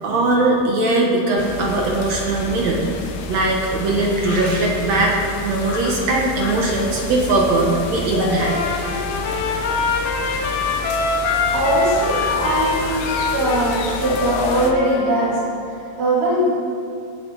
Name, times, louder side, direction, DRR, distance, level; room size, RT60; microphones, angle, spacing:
voice 1, 0.0-2.9 3.3-5.1 5.4-8.6, right 2 dB, 60° right, -1 dB, 2.0 m, -20 dB
sound 1, 1.4-14.7, left 4 dB, 85° left, 2.9 m, -29 dB
Trumpet, 8.4-15.5, left 3 dB, 60° left, 1.8 m, -24 dB
voice 2, 11.5-15.3 15.7-16.5, right 1 dB, 80° right, -8 dB, 5.4 m, -21 dB
19.5 x 8.8 x 4.0 m, 2.5 s
omnidirectional pair, 4.5 m